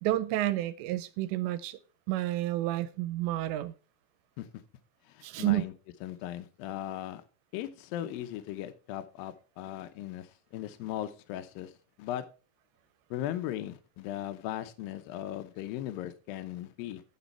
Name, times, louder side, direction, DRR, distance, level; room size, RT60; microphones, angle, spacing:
voice 1, 0.0-1.8 2.1-3.7 5.2-5.6, right 15 dB, 85° right, 2.8 m, -30 dB
voice 2, 5.1-5.7 6.0-7.2 7.5-11.7 12.0-12.3 13.1-17.0, left 12 dB, 80° left, 2.1 m, -38 dB
9.4 x 7.3 x 4.4 m
omnidirectional pair, 5.1 m